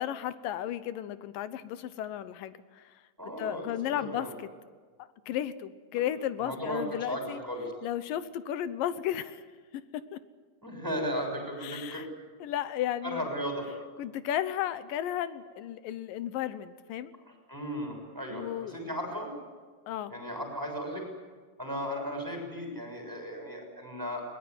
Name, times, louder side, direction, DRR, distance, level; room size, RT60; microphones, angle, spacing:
voice 1, 0.0-2.9 3.4-4.5 5.0-7.4 7.8-9.4 9.7-10.2 11.6-12.1 12.4-13.3 14.0-17.1 18.3-18.9 19.9-20.1, left 11 dB, 70° left, 14 dB, 2.3 m, -34 dB
voice 2, 3.2-4.3 6.4-7.7 10.6-12.1 13.0-13.6 17.5-18.5 18.7-19.3 20.1-21.0 21.6-24.2, equal, 5° right, 2 dB, 6.5 m, -35 dB
21.5 x 21.0 x 9.7 m, 1.5 s
omnidirectional pair, 4.7 m